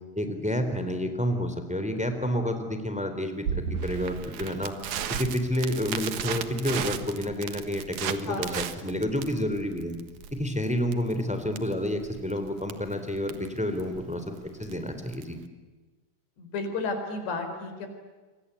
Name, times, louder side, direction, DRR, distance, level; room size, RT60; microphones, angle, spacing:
voice 1, 0.1-4.7 5.2-9.9 10.3-15.4, equal, ahead, 7 dB, 2.9 m, -29 dB
Crackle, 3.5-15.4, right 8 dB, 60° right, 2.4 m, -36 dB
voice 2, 8.3-8.7 16.4-17.9, left 3 dB, 85° left, 6 dB, 6.7 m, -32 dB
28.5 x 24.5 x 8.4 m, 1.3 s
omnidirectional pair, 4.7 m